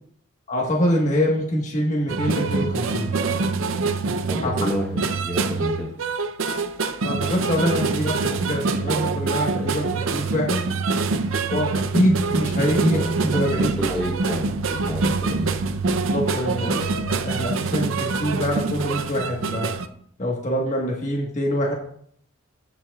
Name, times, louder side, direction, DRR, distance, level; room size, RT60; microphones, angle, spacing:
voice 1, 0.5-3.1 4.4-4.5 7.0-10.6 11.5-13.7 16.0-19.7 20.2-21.7, equal, 35° left, -1 dB, 1.4 m, -24 dB
sound 1, 2.1-19.9, right 4 dB, 85° right, 0.6 m, -25 dB
voice 2, 4.3-5.9 12.8-13.0 13.3-15.5, equal, 5° left, -2 dB, 1.0 m, -30 dB
15.5 x 5.8 x 2.4 m, 0.65 s
head